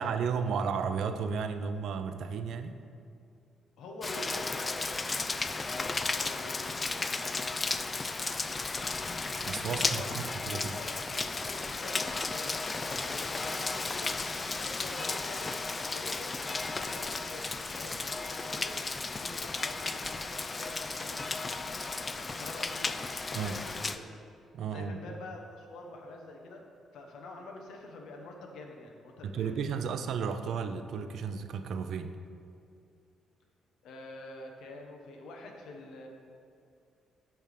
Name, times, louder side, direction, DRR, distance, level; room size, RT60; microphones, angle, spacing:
voice 1, 0.0-2.8 9.4-10.8 23.3-23.5 24.5-25.0 29.2-32.1, right 6 dB, 70° right, 9 dB, 0.5 m, -33 dB
voice 2, 3.8-5.1 5.5-9.1 9.7-14.2 14.6-18.8 19.2-21.8 22.1-23.0 23.3-24.2 24.7-26.6 26.9-29.8 33.8-36.1, left 2 dB, 80° left, 2 dB, 1.0 m, -46 dB
Rain, 4.0-24.0, left 3 dB, 30° left, 0.3 m, -34 dB
8.6 x 3.5 x 6.6 m, 2.4 s
cardioid pair, 90°, 0 cm